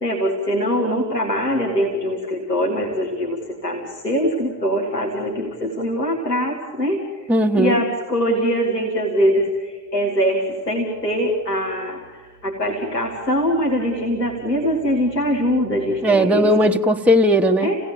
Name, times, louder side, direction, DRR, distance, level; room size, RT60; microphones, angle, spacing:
voice 1, 0.0-7.1 7.5-16.5 17.6-17.8, equal, 90° left, -2 dB, 1.7 m, -22 dB
voice 2, 7.3-7.8 16.0-17.7, equal, 5° right, 4 dB, 1.0 m, -17 dB
28.5 x 17.0 x 7.0 m, 1.4 s
figure-of-eight pair, 45°, 48 cm